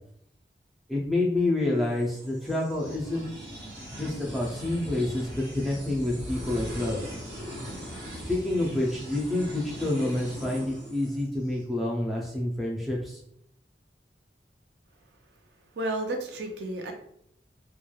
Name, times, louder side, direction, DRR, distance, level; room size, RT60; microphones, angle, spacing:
voice 1, 0.9-3.3 3.9-7.0 8.3-13.2, left 1 dB, ahead, -3 dB, 0.4 m, -28 dB
sound 1, 1.9-11.6, equal, 25° right, 1.3 m, -40 dB
voice 2, 15.8-16.9, right 1 dB, 75° right, 3 dB, 0.5 m, -31 dB
3.0 x 2.1 x 2.2 m, 0.70 s
head